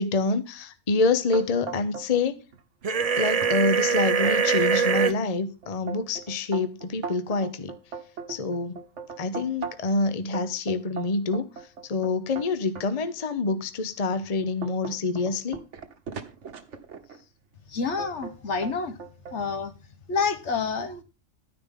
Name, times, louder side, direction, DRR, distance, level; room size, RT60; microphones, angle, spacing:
voice 1, 0.0-2.4 3.2-7.7 8.3-8.8 9.2-11.5 11.8-15.6, left 3 dB, 35° left, 0.8 m, -26 dB
sound 1, 1.3-2.3 2.5-3.1 3.4-3.5 4.0-5.2 5.6-10.0 10.3-12.9 13.5-13.6 14.1-17.2 18.0-18.4 18.6-19.4, right 5 dB, 70° right, 1.4 m, -38 dB
sound 2, 2.8-5.1, right 6 dB, 40° right, 0.6 m, -23 dB
voice 2, 17.7-18.9 19.3-19.7 20.1-21.0, left 5 dB, 65° left, 1.4 m, -28 dB
12.5 x 9.9 x 3.7 m
omnidirectional pair, 1.3 m